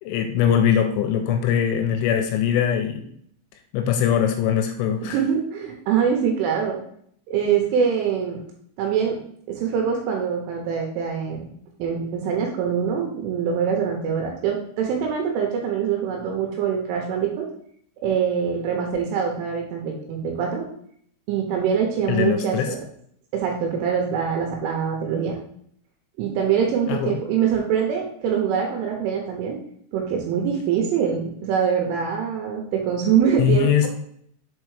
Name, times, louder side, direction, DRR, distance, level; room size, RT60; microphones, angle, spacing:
voice 1, 0.0-3.1 3.7-5.2 22.1-22.7 26.9-27.2 33.4-33.9, left 9 dB, 80° left, 6 dB, 2.8 m, -21 dB
voice 2, 5.1-6.8 7.3-8.4 8.8-9.2 9.5-11.5 11.8-17.5 18.0-20.6 21.3-22.8 23.3-25.4 26.2-29.6 29.9-33.9, right 7 dB, 80° right, 1 dB, 3.3 m, -24 dB
7.0 x 4.5 x 4.8 m, 0.66 s
omnidirectional pair, 5.9 m